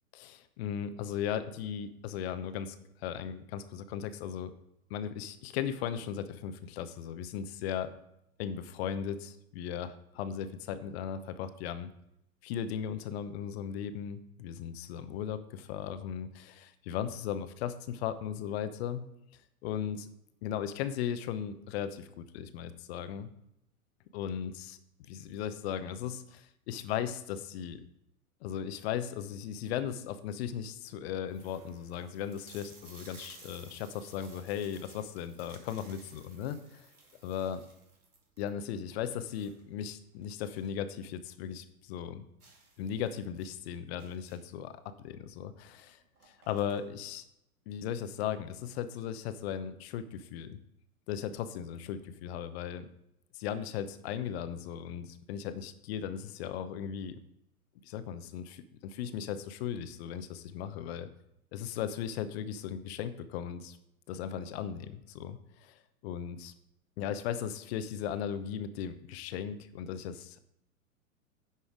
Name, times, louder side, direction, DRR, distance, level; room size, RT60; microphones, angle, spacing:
voice 1, 0.1-2.8 3.0-4.5 4.9-7.9 8.4-11.9 12.4-19.0 19.6-20.1 20.4-23.3 24.1-27.8 28.4-36.9 37.2-37.6 38.4-42.2 42.8-46.0 46.5-47.2 47.7-50.6 51.1-52.9 53.3-57.2 57.8-61.1 61.5-63.8 64.1-66.5 67.0-70.4, left 9 dB, 45° left, 12 dB, 0.9 m, -37 dB
sound 1, 29.4-29.9 30.5-30.6 30.9-31.0 31.3-40.8 41.2-41.3 41.6-41.7 42.4-44.6 45.6-45.7 46.0-47.1, right 3 dB, 85° right, 2.3 m, -57 dB
10.0 x 5.6 x 4.9 m, 0.80 s
figure-of-eight pair, 100°, 43 cm